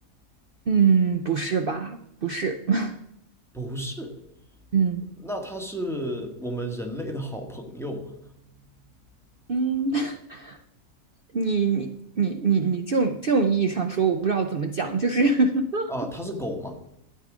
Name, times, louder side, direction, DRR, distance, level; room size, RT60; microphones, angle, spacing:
voice 1, 0.7-3.0 4.7-5.0 9.5-10.6 11.3-11.9 12.2-15.9, right 5 dB, 60° right, 7 dB, 0.6 m, -23 dB
voice 2, 3.5-4.2 5.2-8.3 15.9-16.8, equal, ahead, 3 dB, 1.6 m, -32 dB
13.0 x 8.9 x 5.0 m, 0.78 s
omnidirectional pair, 1.7 m